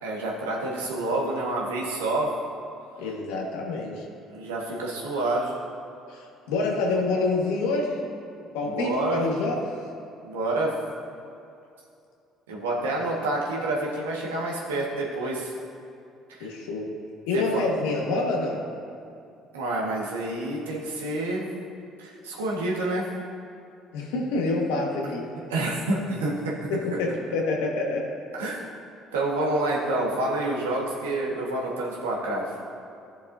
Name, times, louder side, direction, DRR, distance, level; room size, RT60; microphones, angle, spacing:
voice 1, 0.0-2.3 4.3-5.5 8.6-9.2 10.2-10.7 12.5-15.5 16.3-16.5 17.3-17.6 19.5-21.5 22.0-23.0 25.5-26.3 26.9-27.0 28.3-28.6 29.1-32.5, right 2 dB, 85° right, -4 dB, 1.5 m, -28 dB
voice 2, 3.0-4.0 6.1-8.0 8.4-9.6 12.8-13.1 16.4-16.8 17.3-18.6 23.9-25.2 26.7-28.1, left 3 dB, 80° left, -1 dB, 1.5 m, -27 dB
14.0 x 6.8 x 2.7 m, 2.6 s
hypercardioid pair, 60°, 0 cm